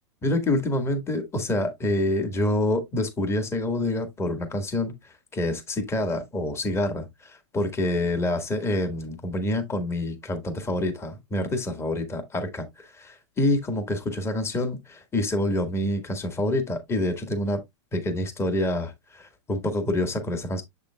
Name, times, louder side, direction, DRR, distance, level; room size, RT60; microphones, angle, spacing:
voice 1, 0.2-17.6 17.9-20.6, left 1 dB, 15° left, 1.7 m, -27 dB
7.6 x 6.7 x 2.3 m
hypercardioid pair, 125°, 16 cm